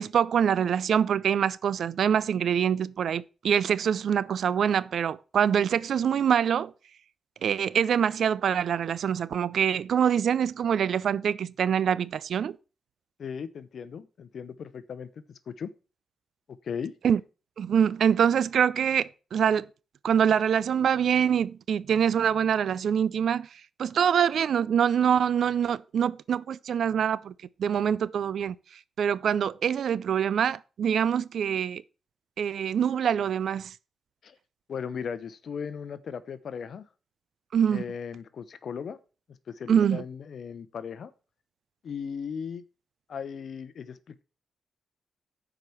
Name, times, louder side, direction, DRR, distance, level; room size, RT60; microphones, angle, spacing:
voice 1, 0.0-6.7 7.4-12.6 17.0-17.2 17.6-19.7 20.0-23.5 23.8-27.3 27.6-28.6 29.0-31.8 32.4-33.7 37.5-37.8 39.7-40.0, right 8 dB, 75° right, 0.4 m, -25 dB
voice 2, 13.2-15.7 16.5-16.9 34.2-34.4 34.7-36.8 37.7-39.0 39.3-41.1 41.8-42.6 43.1-44.2, left 6 dB, 70° left, 0.8 m, -37 dB
7.6 x 5.0 x 7.0 m
supercardioid pair, 55°, 0 cm